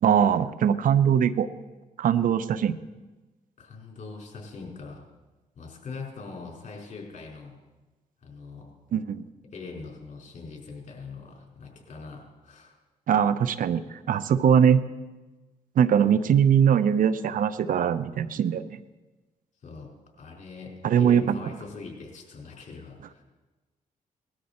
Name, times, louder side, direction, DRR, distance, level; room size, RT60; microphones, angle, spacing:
voice 1, 0.0-1.5 2.0-2.8 8.9-9.2 13.1-14.8 15.8-18.8 20.8-21.4, right 8 dB, 70° right, 15 dB, 0.7 m, -21 dB
voice 2, 3.6-5.0 5.6-7.6 8.2-8.7 9.5-12.7 19.6-19.9 20.2-23.2, left 4 dB, 55° left, -1 dB, 4.7 m, -42 dB
19.0 x 13.0 x 4.3 m, 1.2 s
cardioid pair, 75°, 15 cm